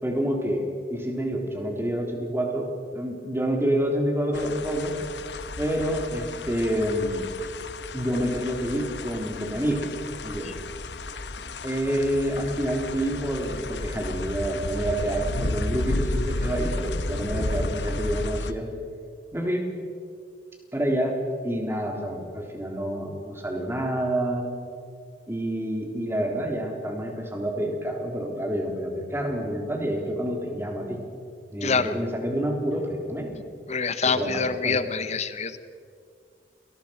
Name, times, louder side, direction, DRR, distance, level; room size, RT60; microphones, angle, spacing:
voice 1, 0.0-4.9 5.6-7.3 7.9-9.9 10.2-10.6 11.6-18.7 19.3-19.7 20.7-21.1 21.4-24.5 25.3-31.0 31.5-33.3 34.0-34.8, equal, 15° right, 1 dB, 3.7 m, -28 dB
sound 1, 4.3-18.5, left 2 dB, 75° left, 1.1 m, -32 dB
voice 2, 31.6-31.9 33.7-35.6, left 5 dB, 40° left, 12 dB, 1.0 m, -26 dB
29.0 x 19.0 x 5.9 m, 2.2 s
head